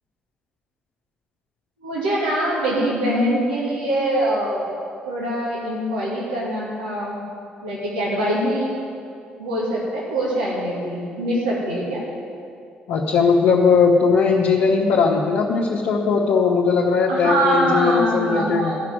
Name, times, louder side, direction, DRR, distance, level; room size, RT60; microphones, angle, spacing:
voice 1, 1.8-4.6 5.1-7.2 7.6-8.7 9.4-12.0 17.1-18.8, right 1 dB, 80° right, -6 dB, 2.3 m, -23 dB
voice 2, 12.9-18.7, left 5 dB, 60° left, -2 dB, 1.1 m, -18 dB
13.5 x 6.0 x 9.1 m, 2.4 s
figure-of-eight pair, 45°, 5 cm